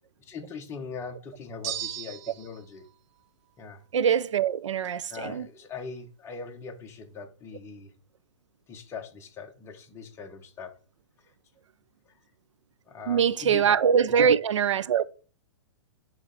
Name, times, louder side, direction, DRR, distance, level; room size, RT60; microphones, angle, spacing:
voice 1, 0.2-2.9 3.6-3.8 5.1-7.9 8.7-10.8 11.2-11.3 12.0-12.1 12.9-13.7 14.1-14.3, left 5 dB, 15° left, 1.1 m, -41 dB
sound 1, 1.6-2.6, right 12 dB, 35° right, 0.5 m, -35 dB
voice 2, 3.9-5.4 13.1-15.1, right 7 dB, 85° right, 0.5 m, -23 dB
9.6 x 3.2 x 3.9 m
hypercardioid pair, 135°, 15 cm